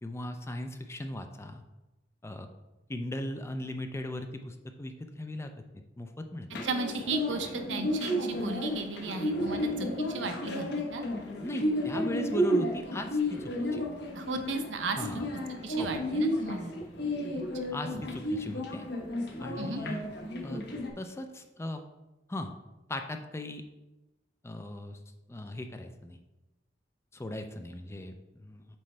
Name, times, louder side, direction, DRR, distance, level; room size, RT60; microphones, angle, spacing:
voice 1, 0.0-1.6 2.2-2.5 2.9-5.5 6.0-6.5 11.4-13.8 15.0-15.2 15.8-15.9 17.0-17.1 17.7-18.8 19.4-20.0 20.4-20.6 21.0-21.8 22.3-22.5 22.9-23.6 24.4-25.0 25.3-26.2 27.1-28.1 28.4-28.7, left 1 dB, 15° left, 6 dB, 0.4 m, -38 dB
sound 1, 6.5-20.9, equal, 65° left, 0.9 m, -32 dB
voice 2, 6.6-11.1 14.1-15.2 15.6-16.7 17.6-17.7 19.6-19.8, right 3 dB, 80° right, 5 dB, 0.7 m, -35 dB
7.5 x 4.4 x 3.2 m, 1.0 s
head